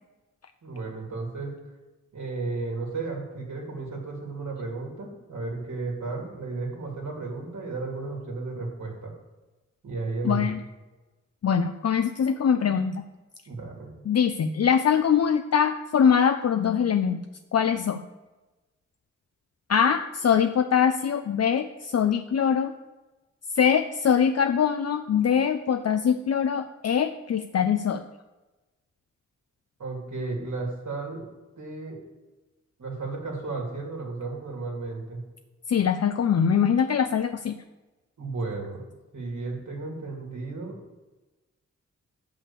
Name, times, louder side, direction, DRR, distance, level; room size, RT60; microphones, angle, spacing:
voice 1, 0.6-1.5 2.1-9.1 9.8-10.6 13.5-13.9 29.8-31.2 31.6-32.0 32.8-35.2 38.2-38.8 39.1-40.8, right 3 dB, 65° right, -1 dB, 2.7 m, -33 dB
voice 2, 10.2-10.6 11.4-13.0 14.1-17.2 17.5-18.0 19.7-22.7 23.6-28.1 35.7-37.6, left 7 dB, 55° left, 8 dB, 0.6 m, -23 dB
6.9 x 5.8 x 6.8 m, 1.2 s
cardioid pair, 40°, 31 cm